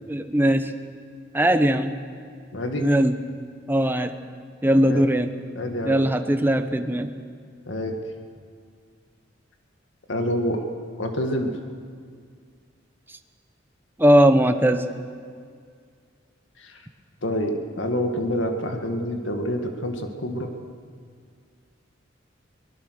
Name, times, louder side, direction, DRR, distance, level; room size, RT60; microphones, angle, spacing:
voice 1, 0.1-0.7 1.3-2.0 2.8-3.2 3.7-4.2 4.6-5.3 5.9-7.1 14.0-14.9, equal, 10° right, 8 dB, 0.9 m, -19 dB
voice 2, 2.5-2.9 4.9-5.0 5.6-6.1 7.7-8.0 10.1-10.6 11.0-11.6 16.6-16.8 17.2-20.5, equal, 80° left, 4 dB, 2.0 m, -27 dB
23.5 x 19.5 x 6.5 m, 2.1 s
head